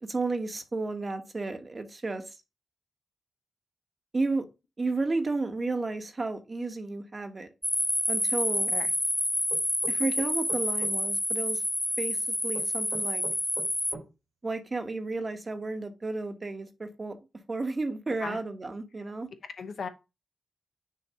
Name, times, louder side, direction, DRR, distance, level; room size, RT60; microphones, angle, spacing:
voice 1, 0.0-2.2 4.1-4.4 4.8-7.5 8.1-8.7 9.9-11.6 12.0-13.2 14.4-17.2 17.5-19.3, right 3 dB, 40° right, 1.2 m, -32 dB
sound 1, 7.6-13.9, left 1 dB, 10° left, 0.4 m, -28 dB
sound 2, 9.5-10.9 12.5-14.1, right 4 dB, 85° right, 3.0 m, -42 dB
voice 2, 19.6-19.9, left 5 dB, 75° left, 0.8 m, -36 dB
6.5 x 2.6 x 5.6 m
cardioid pair, 50°, 0 cm